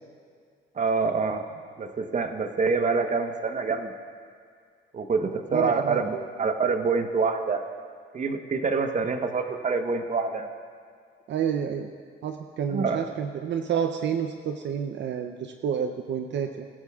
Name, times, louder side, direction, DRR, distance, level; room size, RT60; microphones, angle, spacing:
voice 1, 0.8-1.4 1.8-3.9 4.9-7.6 8.1-10.5 12.7-13.1, right 4 dB, 40° right, 6 dB, 1.1 m, -26 dB
voice 2, 5.5-6.0 11.3-11.9 12.2-16.7, right 8 dB, 65° right, 5 dB, 0.6 m, -29 dB
23.5 x 12.5 x 2.4 m, 2.1 s
cardioid pair, 90°, 20 cm